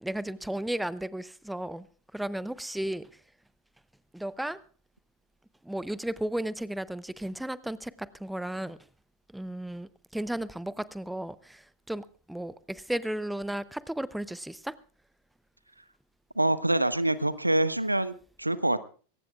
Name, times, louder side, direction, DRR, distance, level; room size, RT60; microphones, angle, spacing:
voice 1, 0.0-1.9 2.1-3.2 4.1-4.6 5.6-8.8 9.3-14.8, right 1 dB, 5° right, 19 dB, 0.6 m, -34 dB
voice 2, 16.4-18.8, right 1 dB, 85° right, 15 dB, 0.9 m, -26 dB
22.5 x 18.0 x 2.4 m, 0.39 s
figure-of-eight pair, 90°, 0 cm